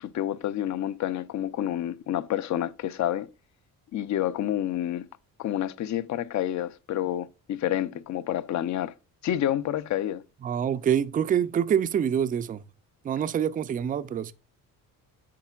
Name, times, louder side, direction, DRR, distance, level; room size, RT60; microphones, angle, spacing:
voice 1, 0.0-3.3 3.9-5.1 5.4-8.9 9.2-10.2, left 11 dB, 55° left, 0.6 m, -29 dB
voice 2, 10.4-12.6 13.0-14.3, right 8 dB, 25° right, 0.3 m, -26 dB
8.5 x 5.8 x 2.3 m
cardioid pair, 135°, 35 cm